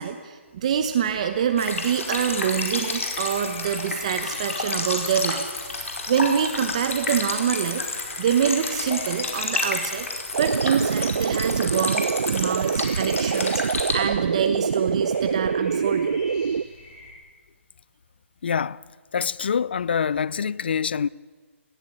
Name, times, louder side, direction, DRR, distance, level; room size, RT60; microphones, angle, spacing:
voice 1, 0.0-7.8 8.2-16.2, right 8 dB, 30° right, 1.0 m, -26 dB
sound 1, 0.6-17.1, left 2 dB, 20° left, 4.0 m, -46 dB
sound 2, 1.6-13.9, left 3 dB, 80° left, 4.8 m, -30 dB
voice 2, 4.5-4.9 18.4-18.8 19.1-21.1, left 7 dB, 50° left, 0.5 m, -26 dB
sound 3, 10.3-16.6, right 6 dB, 65° right, 0.5 m, -25 dB
19.5 x 15.0 x 9.9 m
hypercardioid pair, 175°, 7 cm